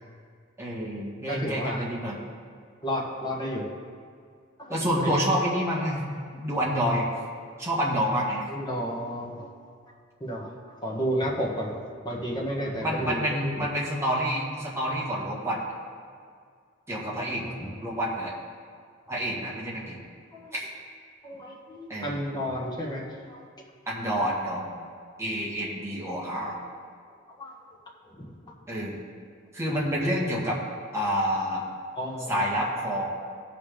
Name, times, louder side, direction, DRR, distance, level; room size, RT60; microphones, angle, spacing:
voice 1, 0.6-2.2 4.7-6.1 6.3-7.1 7.6-8.5 12.8-15.6 16.9-17.5 17.8-18.3 19.1-20.0 20.5-20.7 21.9-22.2 23.9-24.7 25.2-26.6 28.7-29.0 29.5-30.6 30.9-31.6 32.3-33.1, equal, 15° right, -5 dB, 1.7 m, -28 dB
voice 2, 1.3-1.9 2.8-3.6 4.6-5.2 8.5-9.5 10.2-13.7 17.1-17.8 19.1-19.4 20.3-20.5 21.2-23.5 27.4-27.6 28.0-28.3 31.9-32.6, equal, 20° left, -3 dB, 1.5 m, -32 dB
16.0 x 5.8 x 3.3 m, 2.1 s
head